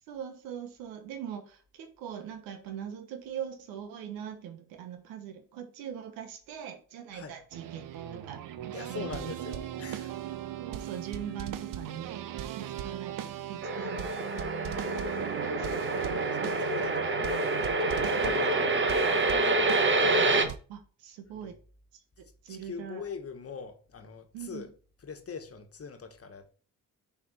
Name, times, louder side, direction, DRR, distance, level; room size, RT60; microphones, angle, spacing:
voice 1, 0.1-8.4 8.9-9.3 10.6-15.8 16.1-16.6 18.2-18.4 20.7-21.5 22.2-23.0 24.3-24.7, right 9 dB, 90° right, 1.0 m, -42 dB
sound 1, 7.5-20.6, right 11 dB, 70° right, 0.7 m, -38 dB
voice 2, 8.7-10.1 16.4-19.9 21.4-21.5 22.5-24.7 25.0-26.5, left 5 dB, 45° left, 1.3 m, -42 dB
sound 2, 13.6-20.4, right 2 dB, 35° right, 1.2 m, -27 dB
6.2 x 4.1 x 4.2 m
supercardioid pair, 50°, 34 cm